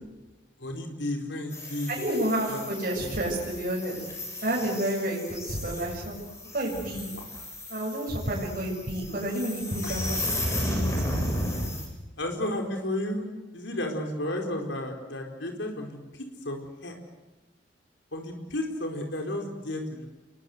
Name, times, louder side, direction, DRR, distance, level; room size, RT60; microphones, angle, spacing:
voice 1, 0.6-2.0 2.5-2.6 3.0-3.2 7.1-7.3 9.8-10.0 12.2-16.9 18.1-20.1, left 1 dB, 85° left, 2 dB, 4.6 m, -33 dB
sound 1, 1.5-11.9, left 1 dB, 15° left, 7.5 m, -34 dB
voice 2, 1.9-4.0 4.4-6.2 6.5-7.1 7.7-10.2 10.6-10.9, right 1 dB, 50° right, -3 dB, 7.7 m, -30 dB
30.0 x 22.5 x 8.1 m, 1.1 s
head